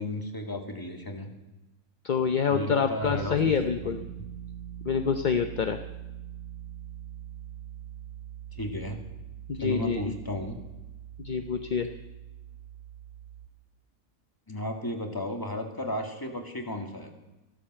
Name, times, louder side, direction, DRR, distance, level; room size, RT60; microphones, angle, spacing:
voice 1, 0.0-1.3 2.5-4.3 8.5-9.0 9.6-10.6 14.5-17.1, left 1 dB, 15° left, 3 dB, 2.0 m, -34 dB
voice 2, 2.0-4.0 4.8-5.8 9.5-10.1 11.2-11.9, left 6 dB, 45° left, 7 dB, 0.7 m, -26 dB
sound 1, 3.0-13.5, right 10 dB, 50° right, 1.9 m, -43 dB
14.5 x 13.0 x 7.6 m, 1.0 s
omnidirectional pair, 1.5 m